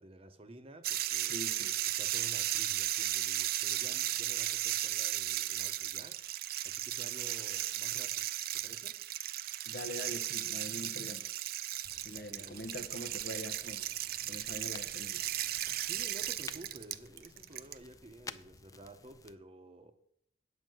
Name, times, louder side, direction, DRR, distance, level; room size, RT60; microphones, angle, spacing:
voice 1, 0.0-1.4 1.9-6.2 6.6-9.0 12.1-12.7 15.8-19.9, right 1 dB, 30° right, 0.8 m, -52 dB
sound 1, 0.8-17.7, right 13 dB, 55° right, 0.4 m, -35 dB
voice 2, 1.2-1.8 9.6-11.3 12.0-13.9 14.3-15.2, left 1 dB, 60° left, 0.9 m, -44 dB
sound 2, 11.8-19.4, left 4 dB, 20° left, 0.4 m, -53 dB
9.2 x 5.0 x 7.8 m
head